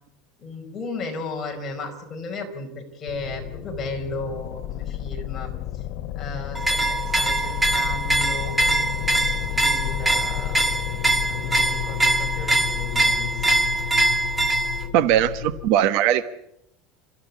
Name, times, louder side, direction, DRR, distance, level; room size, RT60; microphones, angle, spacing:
voice 1, 0.4-5.5 6.1-8.5 9.5-10.6 11.0-13.6, left 3 dB, 20° left, 1 dB, 4.8 m, -35 dB
sound 1, 3.1-15.7, left 12 dB, 50° left, 0.9 m, -31 dB
sound 2, 6.5-14.9, right 2 dB, 5° right, 1.4 m, -23 dB
voice 2, 14.9-16.2, right 11 dB, 60° right, 13 dB, 1.2 m, -19 dB
30.0 x 14.5 x 8.4 m, 0.79 s
cardioid pair, 170°, 0 cm